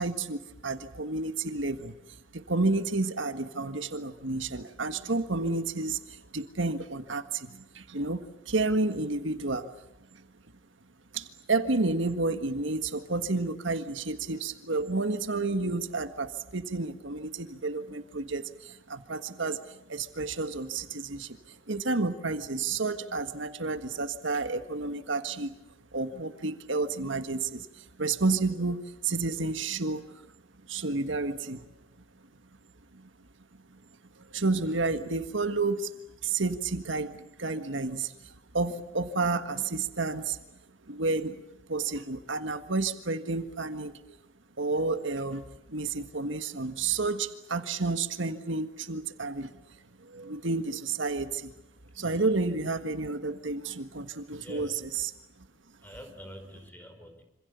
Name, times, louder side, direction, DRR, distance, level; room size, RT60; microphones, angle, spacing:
voice 1, 0.0-9.8 10.1-10.3 11.1-25.6 25.9-30.2 30.7-31.7 32.9-33.1 33.7-33.8 34.2-35.9 36.2-40.4 40.9-41.4 41.7-44.2 44.6-51.5 51.9-55.1, right 3 dB, 70° right, 9 dB, 1.6 m, -31 dB
voice 2, 54.4-54.8 55.8-57.2, equal, 10° left, 5 dB, 4.7 m, -46 dB
27.0 x 26.5 x 7.0 m, 0.88 s
head